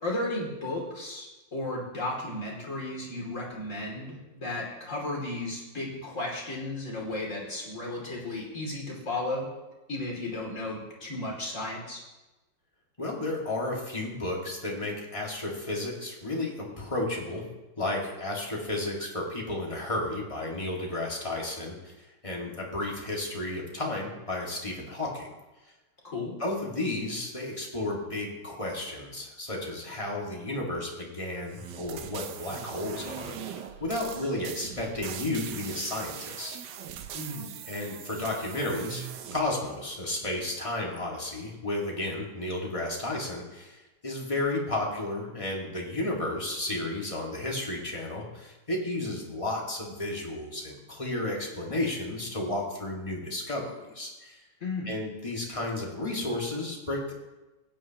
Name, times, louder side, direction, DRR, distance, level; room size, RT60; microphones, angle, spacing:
voice 1, 0.0-9.5 9.9-12.0 26.0-26.3 37.1-37.5 54.6-54.9, left 2 dB, 40° left, -3 dB, 2.9 m, -34 dB
voice 2, 13.0-17.5 17.8-25.3 26.4-36.5 37.6-54.4 54.9-57.1, left 2 dB, 15° left, -2 dB, 1.8 m, -33 dB
sound 1, 31.5-39.4, right 9 dB, 70° right, 1.3 m, -41 dB
16.0 x 9.5 x 2.9 m, 1.1 s
omnidirectional pair, 2.1 m